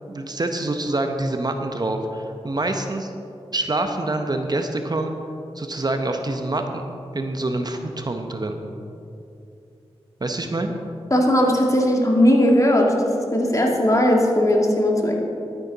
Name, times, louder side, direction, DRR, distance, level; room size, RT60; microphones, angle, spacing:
voice 1, 0.1-3.1 3.5-5.1 5.5-6.8 7.1-8.7 10.2-10.7, right 2 dB, 40° right, 5 dB, 0.8 m, -26 dB
voice 2, 11.1-12.9 13.3-15.2, left 1 dB, 30° left, 0 dB, 2.0 m, -18 dB
12.0 x 9.5 x 4.0 m, 2.7 s
cardioid pair, 50°, 11 cm